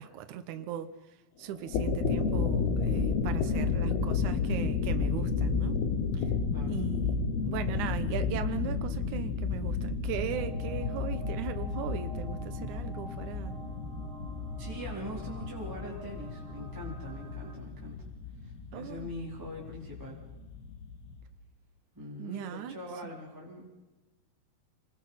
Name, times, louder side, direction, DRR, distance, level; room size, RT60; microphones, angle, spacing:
voice 1, 0.0-5.8 6.1-6.3 6.7-13.6 18.7-19.1 22.2-22.8, right 10 dB, 85° right, 9 dB, 1.7 m, -38 dB
sound 1, 1.5-21.2, left 5 dB, 70° left, 3.7 m, -32 dB
voice 2, 6.5-6.8 14.6-18.0 18.4-20.2 21.9-23.7, equal, 5° right, -5 dB, 3.6 m, -42 dB
sound 2, 10.3-17.6, equal, 35° right, 3.4 m, -48 dB
28.0 x 20.5 x 5.9 m, 1.1 s
omnidirectional pair, 4.9 m